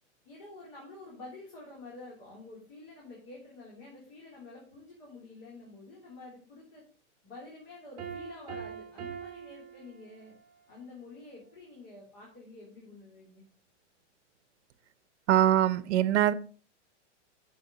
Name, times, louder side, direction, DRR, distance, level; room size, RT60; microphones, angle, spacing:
voice 1, 0.2-6.8 7.2-10.3 10.7-13.5, left 2 dB, 40° left, -4 dB, 3.5 m, -49 dB
Piano, 8.0-10.5, right 7 dB, 20° right, 2.0 m, -43 dB
voice 2, 15.3-16.3, right 12 dB, 65° right, 16 dB, 0.8 m, -23 dB
10.5 x 6.9 x 4.0 m, 0.39 s
supercardioid pair, 180°, 36 cm